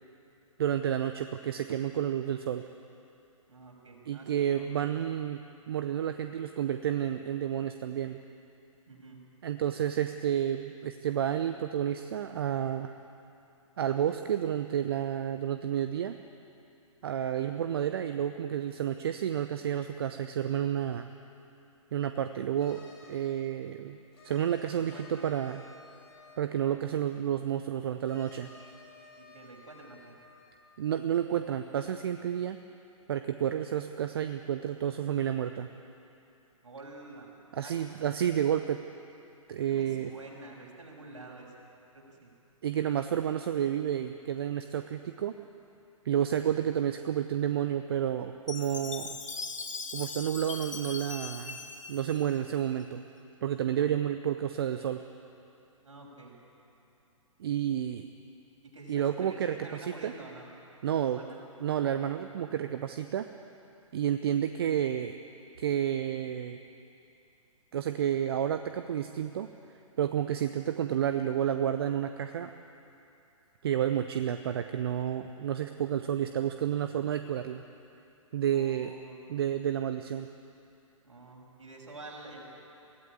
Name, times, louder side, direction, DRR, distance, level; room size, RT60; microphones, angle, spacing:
voice 1, 0.6-2.6 4.1-5.4 5.7-8.2 9.4-12.9 13.8-16.2 17.0-21.1 21.9-22.8 23.1-24.0 24.2-25.6 26.4-28.5 30.8-32.6 33.1-35.7 37.5-38.8 39.5-40.1 42.6-45.3 46.0-49.2 49.9-51.6 51.9-53.0 53.4-55.0 57.4-58.0 58.9-59.5 60.0-60.1 60.8-61.2 61.6-63.3 63.9-65.2 65.6-66.6 67.7-69.5 70.0-72.5 73.6-77.6 78.3-78.9 79.3-80.3, right 10 dB, 45° right, 9 dB, 0.8 m, -30 dB
voice 2, 3.5-4.9 8.9-9.2 17.4-17.6 24.7-25.3 29.1-30.2 36.6-37.3 37.6-37.8 39.6-42.3 53.8-53.9 55.8-56.4 58.7-60.5 61.0-61.4 78.5-79.3 81.0-82.4, right 2 dB, 65° right, -1 dB, 6.2 m, -48 dB
sound 1, 22.6-23.3 24.1-27.2 28.0-32.0, left 4 dB, 50° left, 5.6 m, -56 dB
Chime, 48.5-52.8, left 4 dB, 65° left, 1.7 m, -40 dB
23.0 x 16.0 x 8.7 m, 2.8 s
figure-of-eight pair, 120°, 17 cm